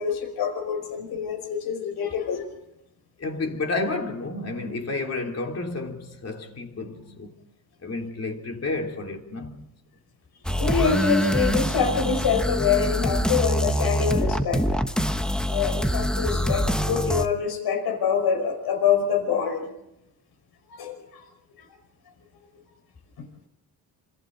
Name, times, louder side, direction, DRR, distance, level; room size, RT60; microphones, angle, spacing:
voice 1, 0.0-2.5 10.6-14.6 15.5-19.7 20.8-21.2 23.2-23.3, left 6 dB, 85° left, 5.3 m, -25 dB
voice 2, 3.2-7.4 7.8-9.6, left 3 dB, 40° left, 3.5 m, -31 dB
sound 1, 10.4-17.3, equal, ahead, 1.2 m, -24 dB
27.0 x 26.5 x 4.1 m
cardioid pair, 115°, 37 cm